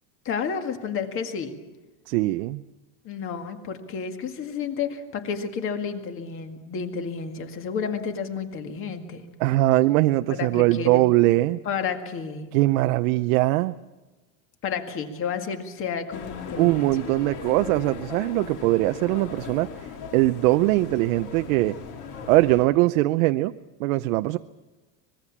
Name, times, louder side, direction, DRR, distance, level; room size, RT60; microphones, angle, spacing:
voice 1, 0.3-1.6 3.0-9.3 10.3-11.1 11.7-12.5 14.6-16.8, left 6 dB, 30° left, 7 dB, 2.0 m, -31 dB
voice 2, 2.1-2.6 9.4-11.6 12.5-13.8 16.6-19.7 20.1-21.8 22.3-23.5 23.8-24.4, right 18 dB, 80° right, 9 dB, 0.7 m, -21 dB
sound 1, 16.1-22.7, left 6 dB, 45° left, 2.9 m, -38 dB
25.0 x 21.0 x 7.3 m, 1.2 s
cardioid pair, 165°, 41 cm